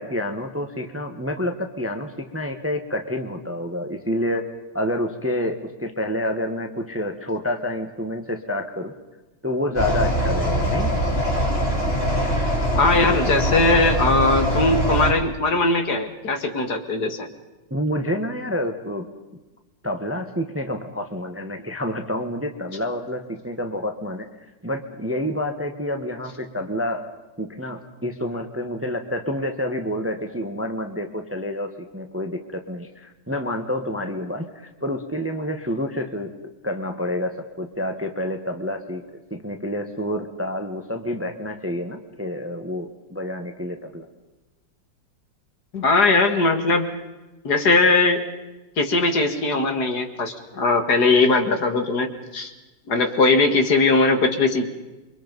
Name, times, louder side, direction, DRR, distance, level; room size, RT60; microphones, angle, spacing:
voice 1, 0.0-4.5 4.7-8.9 9.4-10.9 17.7-19.1 19.8-24.3 24.6-27.0 27.4-36.3 36.6-44.1, left 1 dB, 10° right, 6 dB, 1.2 m, -28 dB
sound 1, 9.7-15.1, equal, 30° left, 4.0 m, -22 dB
voice 2, 12.8-17.3 45.7-46.9 47.4-48.3 48.8-52.5 52.9-54.7, left 3 dB, 55° left, 6 dB, 2.4 m, -20 dB
28.5 x 24.0 x 5.4 m, 1.1 s
omnidirectional pair, 2.1 m